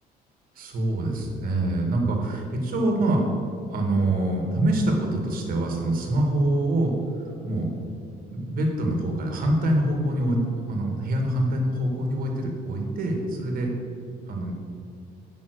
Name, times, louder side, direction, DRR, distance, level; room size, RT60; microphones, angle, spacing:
voice 1, 0.6-3.2 3.7-6.9 7.4-7.7 8.3-10.4 10.7-13.7 14.3-14.5, right 1 dB, 55° right, 2 dB, 1.8 m, -25 dB
7.0 x 5.7 x 6.6 m, 2.5 s
cardioid pair, 110°, 17 cm